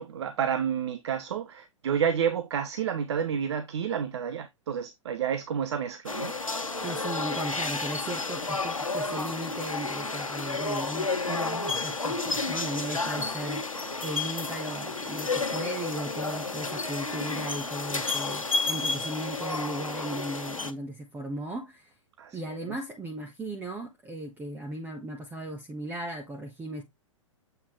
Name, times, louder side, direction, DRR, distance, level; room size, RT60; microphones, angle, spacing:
voice 1, 0.0-6.3 12.9-13.3 22.2-22.4, right 8 dB, 55° right, 0.8 m, -30 dB
sound 1, 6.1-20.7, left 3 dB, 85° left, 1.2 m, -31 dB
voice 2, 6.8-13.6 14.0-21.9 22.3-26.8, right 1 dB, 10° right, 1.3 m, -36 dB
7.9 x 3.9 x 3.1 m
figure-of-eight pair, 110°, 17 cm